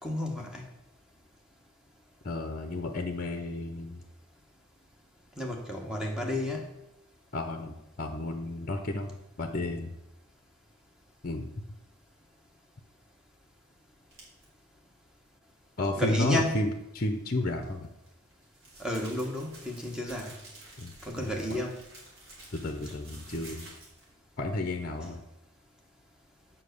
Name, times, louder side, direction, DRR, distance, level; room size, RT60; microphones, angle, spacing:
voice 1, 0.0-0.7 5.4-6.8 16.0-16.7 18.8-20.3 21.0-21.8, left 1 dB, 5° right, 0 dB, 1.2 m, -32 dB
voice 2, 2.2-4.0 7.3-9.9 11.2-11.5 15.8-17.9 20.8-21.6 22.5-23.7 24.4-25.2, left 2 dB, 40° left, 6 dB, 0.7 m, -32 dB
sound 1, 14.1-14.4 17.5-24.1, right 2 dB, 60° right, 3.3 m, -50 dB
7.4 x 5.8 x 6.6 m, 0.83 s
head